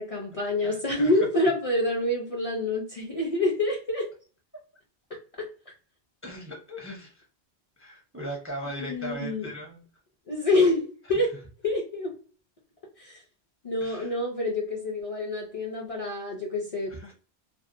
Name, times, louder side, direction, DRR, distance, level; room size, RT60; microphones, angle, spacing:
voice 1, 0.0-4.1 5.1-5.5 8.9-9.5 10.3-11.3 11.6-12.1 13.0-13.2 13.6-17.1, left 2 dB, 45° left, -2 dB, 0.5 m, -27 dB
voice 2, 0.6-1.1 6.2-7.3 7.8-9.8 13.8-14.2 16.9-17.1, equal, 20° right, -1 dB, 0.4 m, -38 dB
2.5 x 2.0 x 2.5 m, 0.38 s
omnidirectional pair, 1.1 m